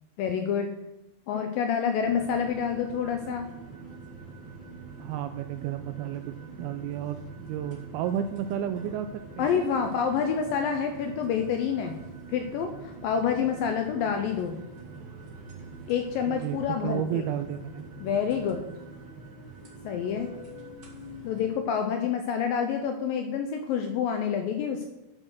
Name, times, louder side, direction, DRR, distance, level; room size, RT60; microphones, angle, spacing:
voice 1, 0.2-0.7 1.3-3.5 9.4-11.9 12.3-14.6 15.9-17.3 18.0-18.6 19.8-20.3 21.2-24.8, left 7 dB, 80° left, 5 dB, 2.1 m, -28 dB
sound 1, 2.0-21.5, right 3 dB, 50° right, 1.4 m, -44 dB
voice 2, 5.0-9.1 9.4-9.7 16.2-17.9, right 10 dB, 85° right, 9 dB, 2.2 m, -32 dB
11.0 x 6.2 x 6.2 m, 0.92 s
omnidirectional pair, 4.8 m